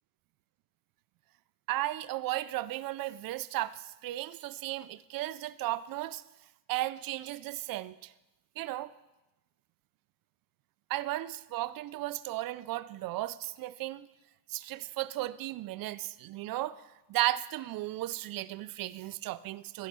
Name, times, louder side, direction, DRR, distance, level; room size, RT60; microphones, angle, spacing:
voice 1, 1.7-6.2 6.7-8.1 8.6-8.9 10.9-14.1 14.5-16.8 17.1-19.9, right 16 dB, 55° right, 0.5 m, -35 dB
13.5 x 5.4 x 6.1 m
cardioid pair, 135°, 44 cm